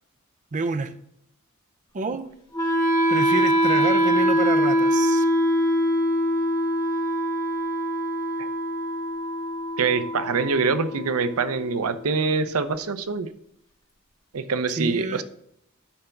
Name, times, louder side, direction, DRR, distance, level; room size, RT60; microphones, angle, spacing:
voice 1, 0.5-0.9 1.9-2.3 3.1-5.2 14.8-15.2, right 3 dB, 35° right, 9 dB, 0.5 m, -28 dB
Wind instrument woodwind instrument, 2.5-12.6, equal, 20° left, 1.9 m, -24 dB
voice 2, 9.8-13.3 14.3-15.2, right 4 dB, 80° right, 11 dB, 0.7 m, -24 dB
9.9 x 3.4 x 5.7 m, 0.74 s
head